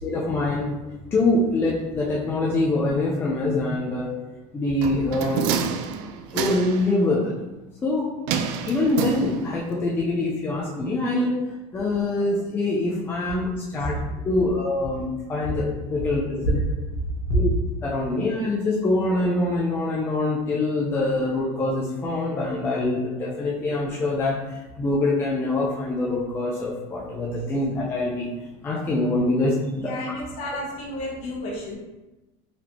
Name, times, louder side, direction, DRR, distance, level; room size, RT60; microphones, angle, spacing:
voice 1, 0.0-0.7 1.1-4.1 4.5-5.5 6.3-7.3 7.8-8.1 8.6-11.3 11.7-14.0 14.2-16.6 17.3-17.5 17.8-28.3 28.6-29.9, left 2 dB, 15° left, -5 dB, 0.5 m, -24 dB
Empty Letter Box, 4.8-6.9 8.3-9.7 10.0-10.1, right 7 dB, 55° right, 0.4 m, -28 dB
voice 2, 29.8-31.8, left 1 dB, 45° left, -2 dB, 1.1 m, -32 dB
4.0 x 3.2 x 2.9 m, 1.1 s
cardioid pair, 165°, 15 cm